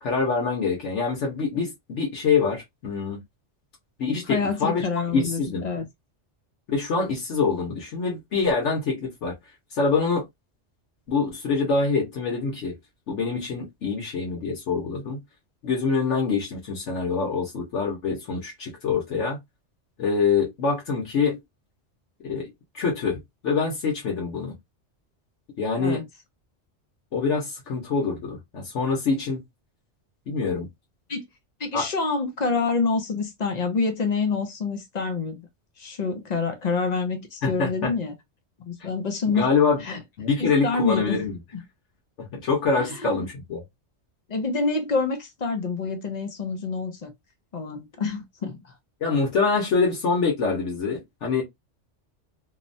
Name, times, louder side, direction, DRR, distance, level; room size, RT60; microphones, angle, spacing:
voice 1, 0.0-3.2 4.0-4.9 5.1-5.7 6.7-9.4 9.7-10.2 11.1-12.8 13.1-15.2 15.6-19.4 20.0-21.4 22.2-24.5 25.6-26.0 27.1-29.4 30.3-30.7 31.7-31.9 37.4-37.9 38.8-38.9 39.3-39.8 40.2-41.4 42.2-43.6 49.0-51.4, left 4 dB, 80° left, 1.2 m, -25 dB
voice 2, 4.1-5.9 25.8-26.0 31.1-31.2 31.6-35.4 35.8-38.1 38.7-39.5 39.8-40.0 40.4-41.2 42.8-43.3 44.3-47.1 47.5-48.6, left 4 dB, 45° left, 0.6 m, -27 dB
3.0 x 2.1 x 2.5 m
omnidirectional pair, 1.2 m